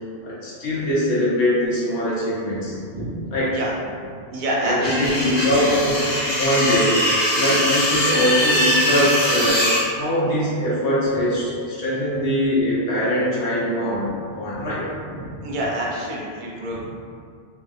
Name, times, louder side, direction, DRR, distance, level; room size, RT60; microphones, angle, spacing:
voice 1, 0.2-2.8 3.3-3.6 4.6-7.0 7.3-14.1 14.3-14.9, left 1 dB, 80° left, -8 dB, 1.2 m, -22 dB
voice 2, 4.3-5.3 5.6-5.7 8.8-8.9 14.5-14.7 15.1-16.9, right 1 dB, 50° right, -5 dB, 0.7 m, -27 dB
sound 1, 4.8-9.8, equal, 35° left, 0.4 m, -21 dB
3.1 x 2.7 x 2.3 m, 2.2 s
omnidirectional pair, 1.2 m